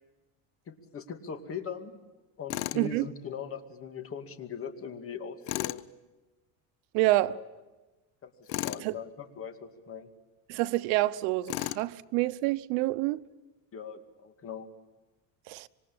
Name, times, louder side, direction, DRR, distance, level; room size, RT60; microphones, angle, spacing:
voice 1, 0.7-2.0 2.4-5.8 7.2-7.5 8.2-10.1 13.7-14.7, left 7 dB, 30° left, 2.3 m, -40 dB
Tools, 2.5-2.9 5.4-5.8 8.5-8.9 11.5-11.9, left 18 dB, 80° left, 0.9 m, -33 dB
voice 2, 2.7-3.1 6.9-7.4 8.8-9.0 10.5-13.2 15.5-15.7, right 18 dB, 85° right, 1.0 m, -27 dB
26.0 x 24.5 x 8.6 m
cardioid pair, 155°, 42 cm